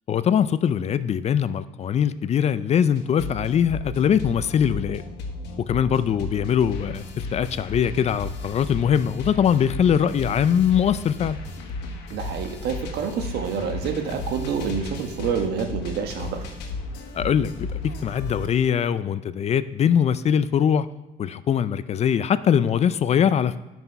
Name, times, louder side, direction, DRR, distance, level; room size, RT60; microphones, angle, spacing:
voice 1, 0.1-5.0 5.6-11.4 17.1-20.9 21.2-23.6, left 8 dB, 40° left, 15 dB, 0.4 m, -22 dB
sound 1, 3.0-18.5, left 2 dB, 90° left, 1.4 m, -34 dB
voice 2, 12.1-16.4, right 6 dB, 75° right, 5 dB, 1.2 m, -28 dB
9.2 x 6.0 x 5.5 m, 1.0 s
cardioid pair, 110°, 17 cm